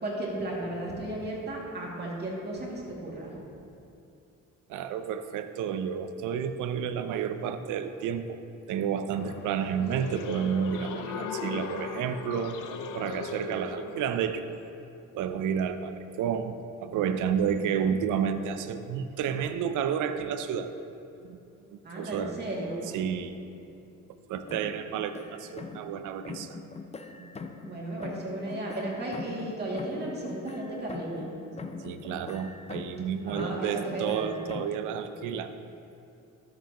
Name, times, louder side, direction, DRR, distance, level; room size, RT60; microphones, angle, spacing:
voice 1, 0.0-3.3 21.8-22.8 27.6-31.3 33.2-34.4, right 1 dB, 35° right, -4 dB, 2.3 m, -34 dB
voice 2, 4.7-8.4 8.7-12.6 12.9-14.5 15.1-16.6 16.8-20.7 21.2-21.4 21.7-22.4 22.9-23.4 24.3-26.6 27.2-27.3 31.8-35.5, right 7 dB, 90° right, 10 dB, 0.6 m, -31 dB
sound 1, 9.1-14.4, left 6 dB, 90° left, 0.7 m, -39 dB
sound 2, 24.5-26.0 26.2-27.7 28.0-31.3 31.6-33.1 33.4-34.8, left 4 dB, 20° left, 0.6 m, -42 dB
13.0 x 7.5 x 3.0 m, 2.7 s
cardioid pair, 90°, 30 cm